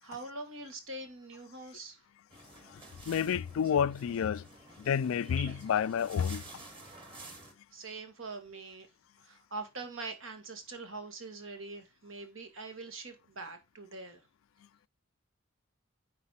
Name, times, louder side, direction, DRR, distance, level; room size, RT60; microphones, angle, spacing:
voice 1, 0.0-2.0 7.7-8.9 9.2-14.2, right 3 dB, 75° right, 1.8 m, -43 dB
sound 1, 2.3-7.5, right 2 dB, 25° right, 1.7 m, -50 dB
voice 2, 2.7-4.5 4.8-6.4, left 8 dB, 80° left, 0.3 m, -30 dB
9.8 x 4.1 x 4.2 m
head